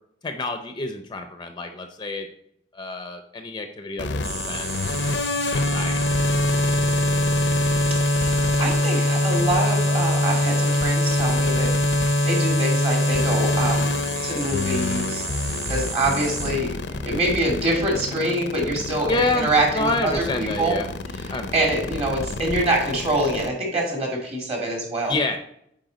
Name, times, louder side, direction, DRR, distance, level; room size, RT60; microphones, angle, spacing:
voice 1, 0.2-2.3 2.7-4.7 5.5-6.0 19.1-20.9 21.3-21.5 25.1-25.4, left 2 dB, 25° left, 7 dB, 0.5 m, -28 dB
sound 1, 4.0-23.5, left 1 dB, 90° left, 0.6 m, -24 dB
sound 2, 4.2-16.5, right 3 dB, 60° right, 3.0 m, -33 dB
voice 2, 8.6-11.7 12.2-13.9 14.2-15.2 15.7-16.7 17.0-20.8 21.2-25.1, right 1 dB, 35° right, -1 dB, 2.1 m, -25 dB
9.1 x 4.2 x 3.9 m, 0.73 s
head